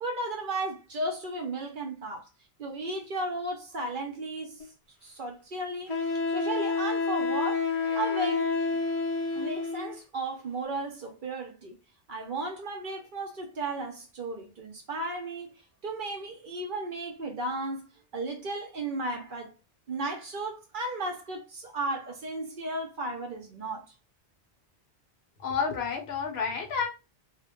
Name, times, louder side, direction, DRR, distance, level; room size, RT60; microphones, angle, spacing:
voice 1, 0.0-2.3 2.6-4.7 5.0-5.9 6.3-7.6 7.9-8.5 9.3-11.8 12.1-17.9 18.1-19.5 19.9-23.8, right 2 dB, 55° right, 0.7 m, -34 dB
Wind instrument woodwind instrument, 4.6-4.7 5.9-10.0, left 4 dB, 40° left, 0.6 m, -29 dB
voice 2, 25.4-26.9, left 6 dB, 70° left, 0.8 m, -30 dB
2.1 x 2.1 x 2.9 m
omnidirectional pair, 1.1 m